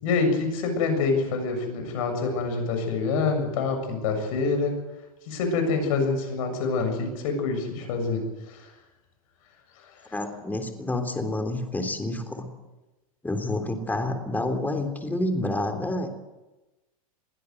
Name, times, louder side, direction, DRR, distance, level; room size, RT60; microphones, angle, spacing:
voice 1, 0.0-4.8 5.3-8.7 9.8-10.1, left 4 dB, 70° left, 6 dB, 7.2 m, -26 dB
voice 2, 10.1-12.5 13.2-16.1, left 1 dB, 10° left, 6 dB, 3.5 m, -28 dB
22.0 x 16.0 x 8.0 m, 1.1 s
hypercardioid pair, 105°, 18 cm